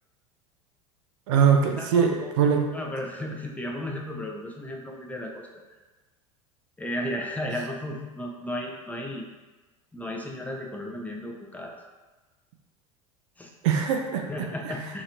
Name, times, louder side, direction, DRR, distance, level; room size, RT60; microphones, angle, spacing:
voice 1, 1.3-2.7 13.6-14.5, right 7 dB, 60° right, 4 dB, 0.5 m, -22 dB
voice 2, 1.8-2.3 2.7-5.6 6.8-9.2 9.9-11.7 13.4-13.5 14.3-15.0, left 1 dB, 10° left, 0 dB, 0.6 m, -34 dB
4.0 x 2.9 x 2.5 m, 1.2 s
figure-of-eight pair, 80°, 18 cm